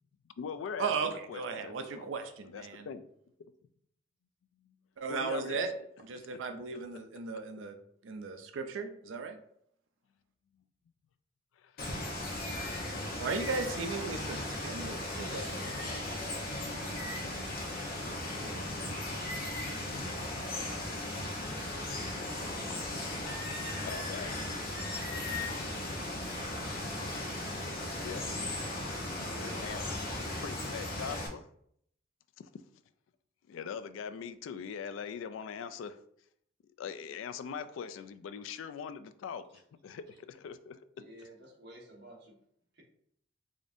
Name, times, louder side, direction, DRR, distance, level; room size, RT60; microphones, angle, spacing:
voice 1, 0.2-2.1 2.4-3.1 4.6-4.7 5.1-5.7 11.6-11.9 22.6-22.8 23.6-24.3 25.1-25.2 28.0-28.2 29.4-29.8 30.4-31.4 32.4-32.5 33.5-36.0 36.8-40.8, left 6 dB, 90° left, 12 dB, 0.3 m, -43 dB
voice 2, 0.8-2.9 5.0-5.7 6.0-7.7 8.0-9.4 13.2-15.7, right 4 dB, 80° right, 6 dB, 0.4 m, -36 dB
Water, 11.8-31.3, left 1 dB, 50° left, 0.8 m, -37 dB
sound 1, 21.4-30.2, right 1 dB, 5° left, 1.1 m, -50 dB
voice 3, 29.1-29.7 41.0-42.4 42.7-42.8, right 1 dB, 60° right, -2 dB, 1.1 m, -50 dB
4.9 x 2.6 x 2.5 m, 0.69 s
head